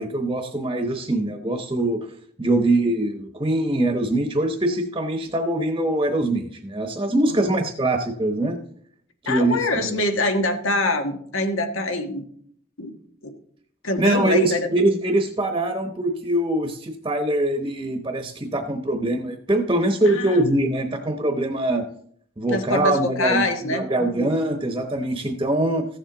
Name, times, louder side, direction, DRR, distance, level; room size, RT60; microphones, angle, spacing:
voice 1, 0.0-2.0 2.4-8.6 9.2-10.0 14.0-21.9 22.4-25.9, right 1 dB, 20° right, 5 dB, 0.9 m, -23 dB
voice 2, 9.2-12.2 12.8-12.9 13.2-13.3 13.8-14.7 20.0-20.4 22.5-24.3, left 2 dB, 85° left, 6 dB, 1.4 m, -25 dB
15.0 x 7.3 x 3.9 m, 0.62 s
head